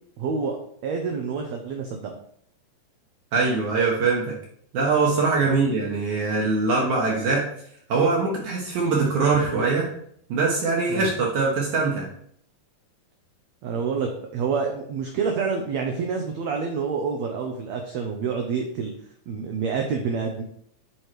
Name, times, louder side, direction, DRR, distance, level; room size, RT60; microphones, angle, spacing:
voice 1, 0.2-0.6 0.8-2.1 5.4-5.6 10.9-11.1 13.6-18.9 19.3-20.4, right 5 dB, 85° right, 3 dB, 1.5 m, -28 dB
voice 2, 3.3-4.4 4.7-7.5 7.9-9.9 10.3-12.1, right 4 dB, 65° right, -3 dB, 2.3 m, -22 dB
7.8 x 4.9 x 4.5 m, 0.67 s
omnidirectional pair, 4.1 m